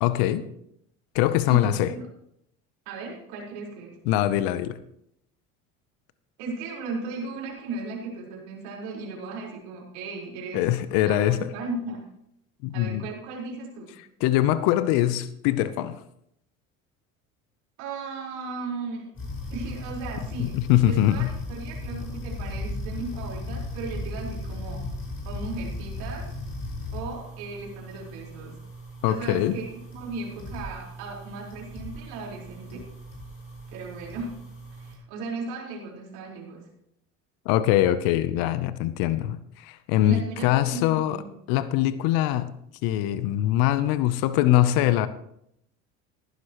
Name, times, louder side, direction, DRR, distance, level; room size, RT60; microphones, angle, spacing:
voice 1, 0.0-0.4 1.1-1.9 4.1-4.8 10.5-11.5 12.6-13.0 14.2-16.0 20.5-21.3 29.0-29.6 37.5-41.2 41.5-42.5 42.8-45.1, left 13 dB, 65° left, 14 dB, 0.8 m, -23 dB
voice 2, 1.5-2.0 2.9-4.0 6.4-10.6 11.0-12.0 12.7-13.9 17.8-19.1 19.5-20.5 20.8-24.8 25.2-26.3 26.9-28.6 29.1-32.8 33.7-34.3 34.7-36.6 40.0-41.3, right 3 dB, 70° right, -3 dB, 4.4 m, -36 dB
sound 1, 19.2-35.0, left 1 dB, 35° left, 5.4 m, -37 dB
14.5 x 11.5 x 3.0 m, 0.76 s
hypercardioid pair, 80°, 38 cm